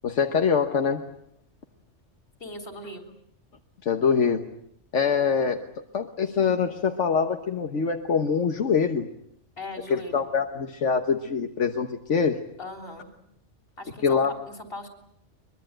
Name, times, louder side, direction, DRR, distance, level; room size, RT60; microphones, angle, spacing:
voice 1, 0.0-1.0 3.8-4.4 4.9-9.1 9.9-12.4 14.0-14.3, left 6 dB, 85° left, 5 dB, 1.6 m, -24 dB
voice 2, 2.4-3.0 9.6-10.3 12.6-13.1 13.8-14.9, left 1 dB, 50° left, 5 dB, 4.0 m, -39 dB
23.5 x 22.0 x 9.0 m, 0.72 s
omnidirectional pair, 1.2 m